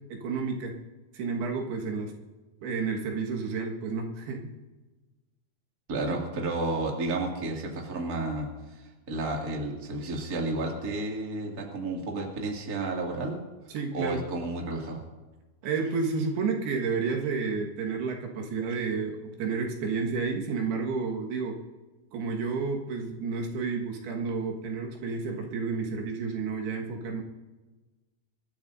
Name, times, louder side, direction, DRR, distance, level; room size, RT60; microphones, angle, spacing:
voice 1, 0.1-0.7 1.1-2.1 2.6-4.5 13.7-14.3 15.6-21.6 22.1-27.2, right 4 dB, 80° right, 1 dB, 3.6 m, -31 dB
voice 2, 5.9-13.4 13.9-15.1, right 2 dB, 30° right, -1 dB, 2.1 m, -32 dB
26.0 x 12.5 x 2.7 m, 1.2 s
omnidirectional pair, 4.5 m